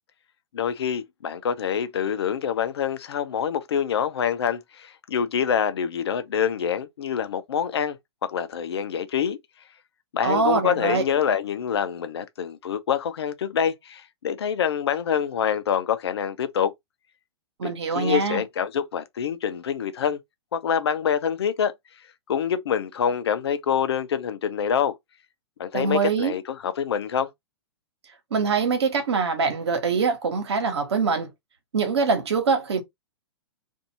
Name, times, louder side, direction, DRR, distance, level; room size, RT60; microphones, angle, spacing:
voice 1, 0.5-8.0 8.3-9.4 10.1-16.7 17.6-20.2 20.5-21.7 22.3-25.0 25.6-27.3, left 8 dB, 70° left, 0.7 m, -26 dB
voice 2, 10.2-11.0 17.6-18.4 25.7-26.4 28.3-31.3 31.7-32.8, right 5 dB, 75° right, 1.3 m, -23 dB
2.6 x 2.6 x 4.2 m
hypercardioid pair, 115°, 14 cm